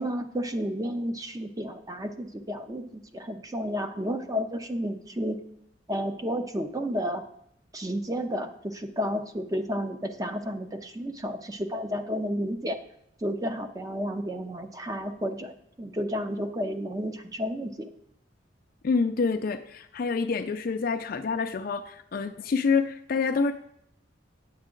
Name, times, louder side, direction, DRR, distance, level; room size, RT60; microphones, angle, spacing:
voice 1, 0.0-5.4 5.9-7.2 7.7-12.8 13.2-15.5 15.8-17.9, equal, 20° right, 7 dB, 0.6 m, -31 dB
voice 2, 18.8-23.5, left 4 dB, 50° left, 6 dB, 0.4 m, -27 dB
9.5 x 7.3 x 3.8 m, 0.73 s
head